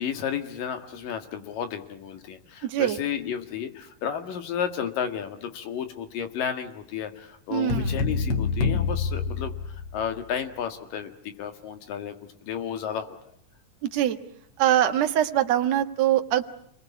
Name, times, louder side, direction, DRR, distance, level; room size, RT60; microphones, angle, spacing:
voice 1, 0.0-12.1 12.4-13.2, left 8 dB, 80° left, 7 dB, 3.6 m, -32 dB
voice 2, 2.6-3.0 7.5-7.9 13.8-14.2 14.6-16.4, right 11 dB, 60° right, 6 dB, 2.4 m, -23 dB
sound 1, 7.7-10.2, left 4 dB, 45° left, 2.8 m, -27 dB
29.0 x 21.0 x 8.6 m, 0.71 s
omnidirectional pair, 3.8 m